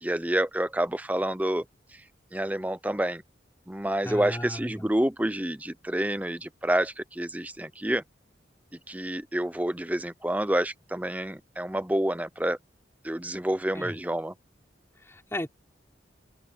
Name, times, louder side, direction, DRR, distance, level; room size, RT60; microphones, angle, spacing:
voice 1, 0.0-1.6 2.3-3.2 3.7-8.0 8.9-12.6 13.0-14.3, right 1 dB, 10° right, 0.7 m, -28 dB
voice 2, 4.0-4.8 13.7-13.9 15.0-15.5, left 1 dB, 15° left, 3.9 m, -35 dB
open air
head